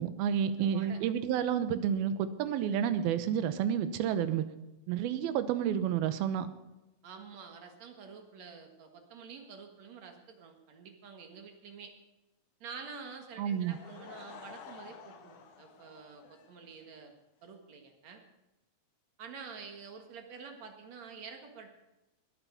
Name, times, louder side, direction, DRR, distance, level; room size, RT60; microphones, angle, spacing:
voice 1, 0.0-4.5 4.9-6.5 13.4-13.8, right 9 dB, 85° right, 12 dB, 2.8 m, -30 dB
voice 2, 0.6-1.0 7.0-11.9 12.6-17.1 17.4-18.2 19.2-21.7, right 5 dB, 55° right, 5 dB, 2.5 m, -48 dB
Laughter / Crowd, 13.5-17.0, left 6 dB, 65° left, 2.6 m, -51 dB
20.5 x 8.9 x 5.7 m, 0.98 s
omnidirectional pair, 4.2 m